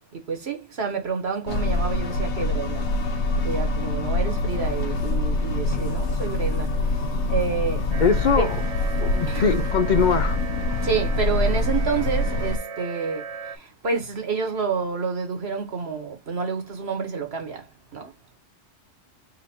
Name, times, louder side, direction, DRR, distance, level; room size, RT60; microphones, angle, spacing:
voice 1, 0.1-2.8 3.4-6.7 7.3-7.8 8.4-8.5 9.3-9.5 10.8-13.2 13.8-17.6 17.9-18.1, right 5 dB, 65° right, 1.4 m, -28 dB
sound 1, 1.5-12.6, left 2 dB, 75° left, 1.2 m, -25 dB
sound 2, 7.9-13.6, right 6 dB, 85° right, 1.2 m, -37 dB
voice 2, 8.0-8.6 9.0-10.4, left 5 dB, 55° left, 0.5 m, -22 dB
4.2 x 2.5 x 4.2 m
omnidirectional pair, 1.2 m